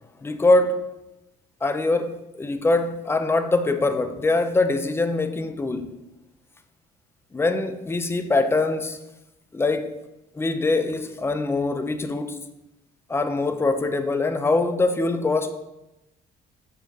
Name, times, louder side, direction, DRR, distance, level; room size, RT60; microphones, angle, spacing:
voice 1, 0.2-0.8 1.6-5.9 7.3-9.0 9.5-9.9 10.3-12.4 13.1-15.5, left 2 dB, 15° left, 9 dB, 0.5 m, -23 dB
7.1 x 6.2 x 2.8 m, 0.97 s
cardioid pair, 110°, 17 cm